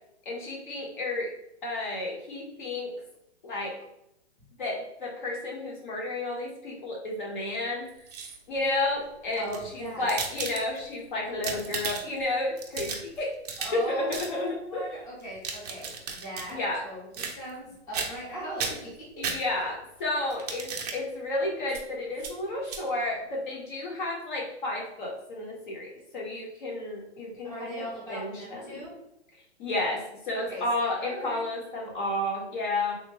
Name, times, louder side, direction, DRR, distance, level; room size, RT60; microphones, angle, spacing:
voice 1, 0.2-1.3 1.6-3.0 3.4-3.8 4.6-7.9 8.5-13.3 13.7-14.9 16.5-16.8 19.2-28.8 29.6-32.9, left 2 dB, 45° left, -1 dB, 0.9 m, -32 dB
sound 1, 7.9-8.6 9.3-10.9 11.3-12.2 12.6-13.8 14.1-14.3 15.2-16.5 17.1-17.6 17.9-18.3 18.6-19.8 20.3-21.0 21.7-21.8 22.2-22.3 22.6-22.8, right 5 dB, 35° right, 0.4 m, -35 dB
voice 2, 9.4-10.0 13.6-16.6 16.8-18.9 27.4-28.9 30.3-31.4, right 1 dB, 10° left, -8 dB, 0.7 m, -39 dB
3.4 x 2.1 x 3.2 m, 0.83 s
hypercardioid pair, 160°, 34 cm